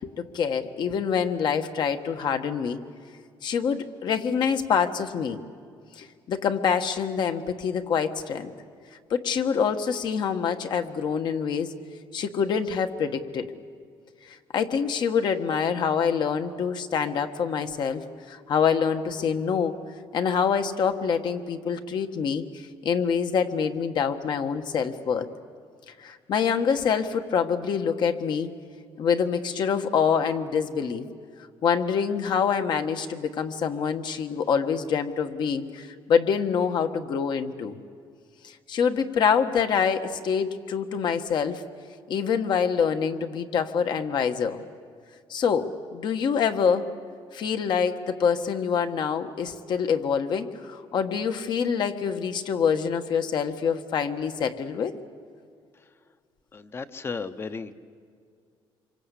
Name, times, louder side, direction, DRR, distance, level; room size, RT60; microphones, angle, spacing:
voice 1, 0.0-2.8 3.4-5.4 6.0-8.5 9.1-11.7 12.1-13.5 14.2-19.8 20.1-22.4 22.8-25.3 26.0-28.5 29.0-31.1 31.6-37.8 38.4-41.6 42.1-44.6 45.3-46.9 47.3-54.9, left 6 dB, 55° left, 7 dB, 1.4 m, -26 dB
voice 2, 56.5-57.7, left 4 dB, 25° left, 11 dB, 1.0 m, -34 dB
27.0 x 24.5 x 8.3 m, 2.2 s
cardioid pair, 155°, 9 cm